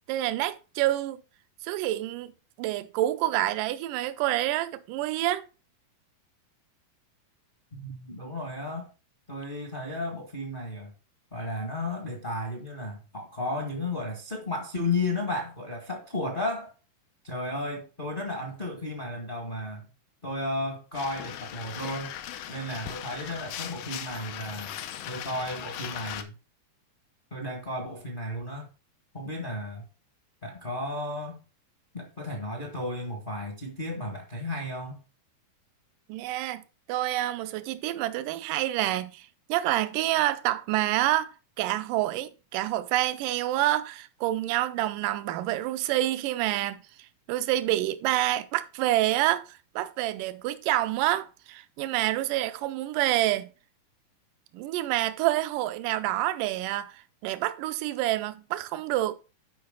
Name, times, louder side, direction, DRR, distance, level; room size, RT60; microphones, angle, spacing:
voice 1, 0.1-1.2 1.6-2.3 2.6-5.4 36.1-36.6 36.9-46.8 47.3-49.4 49.8-53.5 54.5-59.1, right 15 dB, 75° right, 2.2 m, -27 dB
voice 2, 7.7-8.9 9.3-10.9 11.3-16.7 17.2-19.8 20.2-22.2 22.5-24.8 25.1-26.3 27.3-28.7 29.1-29.8 30.4-31.4 31.9-35.0, left 2 dB, 30° left, 0.9 m, -33 dB
sound 1, 20.9-26.2, left 10 dB, 75° left, 2.3 m, -39 dB
12.0 x 5.1 x 3.8 m
omnidirectional pair, 4.1 m